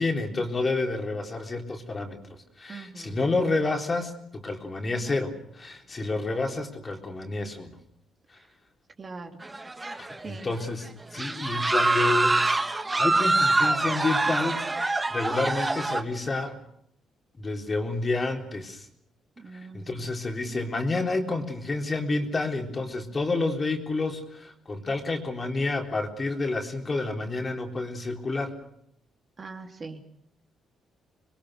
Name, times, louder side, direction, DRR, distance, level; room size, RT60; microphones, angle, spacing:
voice 1, 0.0-7.8 8.3-8.4 10.0-12.4 13.0-16.6 17.4-18.9 19.5-28.5, left 3 dB, 30° left, 3 dB, 3.9 m, -29 dB
voice 2, 2.7-3.2 9.0-9.4 10.2-10.5 19.4-20.1 29.4-30.0, right 4 dB, 35° right, 4 dB, 3.1 m, -41 dB
sound 1, 9.4-10.3 10.6-10.7 11.2-16.0, right 2 dB, 20° right, 1.7 m, -25 dB
27.0 x 21.5 x 6.6 m, 0.74 s
cardioid pair, 90°, 0 cm